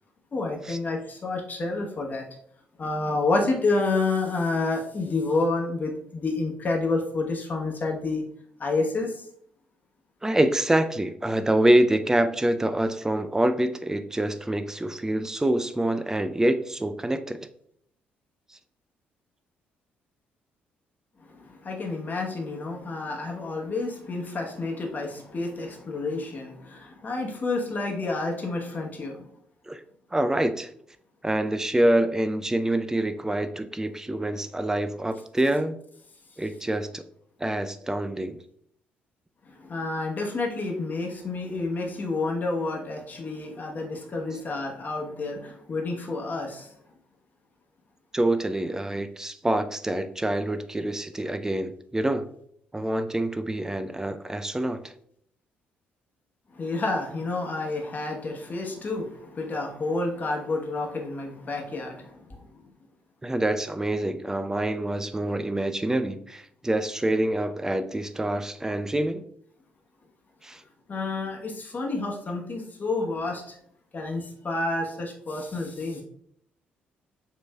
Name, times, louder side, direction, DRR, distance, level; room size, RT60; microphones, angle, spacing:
voice 1, 0.3-2.2 2.8-8.2 8.6-9.1 21.3-29.2 39.7-46.7 56.5-62.1 70.9-73.6 73.9-76.0, left 3 dB, 35° left, 0 dB, 1.1 m, -29 dB
voice 2, 10.2-17.4 29.7-29.8 30.1-30.7 31.2-35.8 36.4-37.0 37.4-38.4 48.1-52.3 52.7-54.9 63.2-69.2 70.4-70.6, right 1 dB, 10° right, 10 dB, 0.4 m, -26 dB
6.5 x 3.1 x 2.3 m, 0.68 s
figure-of-eight pair, 45°, 5 cm